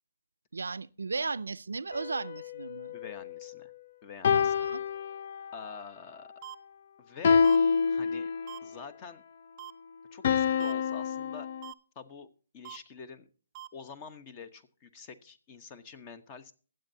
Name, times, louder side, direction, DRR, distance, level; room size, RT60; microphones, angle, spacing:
voice 1, 0.5-2.9 4.3-4.8, right 4 dB, 90° right, 0.4 m, -36 dB
sound 1, 1.9-3.7 4.2-5.7 7.2-8.7 10.2-11.7, left 6 dB, 55° left, 0.4 m, -28 dB
voice 2, 2.9-3.7 4.0-4.5 5.5-6.3 7.0-7.4 7.9-8.3 8.6-9.2 10.1-11.5 11.9-12.3 12.5-13.3 13.7-16.5, left 5 dB, 30° left, 1.0 m, -46 dB
sound 2, 6.4-6.6 7.4-7.6 8.5-8.6 9.6-9.7 10.6-10.7 11.6-11.7 12.6-12.8 13.6-13.7, right 13 dB, 30° right, 0.5 m, -43 dB
22.5 x 7.8 x 2.8 m
hypercardioid pair, 145°, 0 cm